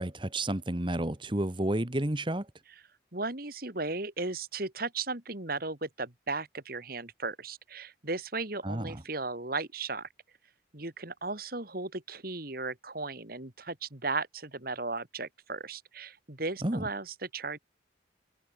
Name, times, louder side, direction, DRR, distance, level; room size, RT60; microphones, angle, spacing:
voice 1, 0.0-2.4 8.6-9.0 16.6-16.8, right 1 dB, 25° right, 1.3 m, -31 dB
voice 2, 3.1-10.1 10.7-17.6, right 3 dB, 50° right, 2.4 m, -36 dB
head